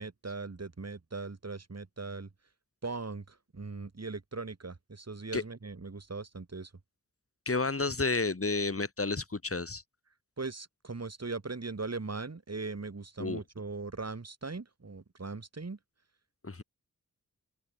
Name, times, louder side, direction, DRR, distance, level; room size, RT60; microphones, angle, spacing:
voice 1, 0.0-2.3 2.8-6.7 10.4-15.8, right 3 dB, 50° right, 5.3 m, -39 dB
voice 2, 7.5-9.8 13.2-13.4 16.4-16.6, left 3 dB, 40° left, 3.9 m, -31 dB
open air
wide cardioid pair, 75°, 34 cm